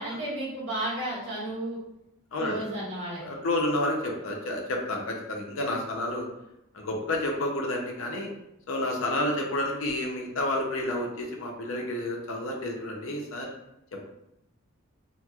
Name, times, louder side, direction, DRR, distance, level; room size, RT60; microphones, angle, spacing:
voice 1, 0.0-1.8 2.4-3.4, right 1 dB, 65° right, -7 dB, 1.4 m, -33 dB
voice 2, 3.2-6.3 6.7-8.3 8.7-13.5 13.9-14.1, left 1 dB, 75° left, 0 dB, 0.6 m, -30 dB
3.0 x 2.8 x 2.3 m, 0.83 s
head